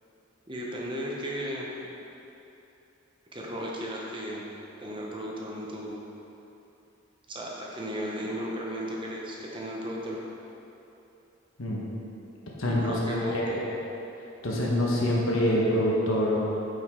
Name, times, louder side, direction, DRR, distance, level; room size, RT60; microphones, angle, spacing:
voice 1, 0.5-1.7 3.3-4.4 4.8-6.0 7.3-10.2 12.6-13.6, equal, 25° right, -3 dB, 1.0 m, -35 dB
voice 2, 12.6-13.5 14.4-16.4, left 1 dB, 85° left, -4 dB, 1.3 m, -25 dB
9.7 x 5.4 x 3.8 m, 2.9 s
head